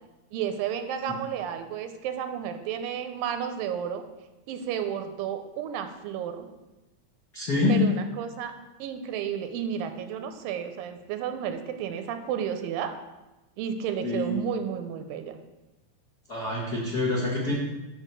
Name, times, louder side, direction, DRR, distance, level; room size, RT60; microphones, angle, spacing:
voice 1, 0.3-4.0 4.5-6.5 7.7-8.5 8.8-12.9 13.6-15.4, right 8 dB, 90° right, 8 dB, 2.4 m, -32 dB
voice 2, 7.3-7.9 14.0-14.3 16.3-17.5, left 3 dB, 60° left, -6 dB, 1.0 m, -25 dB
9.3 x 3.8 x 6.7 m, 1.0 s
omnidirectional pair, 4.0 m